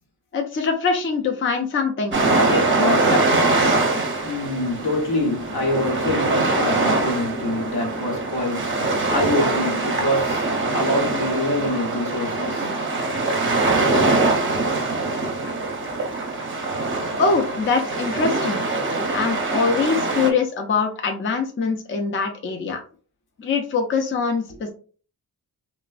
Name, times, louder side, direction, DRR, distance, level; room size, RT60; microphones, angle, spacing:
voice 1, 0.3-3.8 17.2-18.6 19.1-22.8 23.4-24.7, left 4 dB, 35° left, 0.5 m, -23 dB
sound 1, 2.1-20.3, right 3 dB, 30° right, 0.6 m, -23 dB
voice 2, 4.2-12.7, left 1 dB, 70° left, 1.0 m, -25 dB
3.1 x 2.1 x 2.4 m
cardioid pair, 100°, 38 cm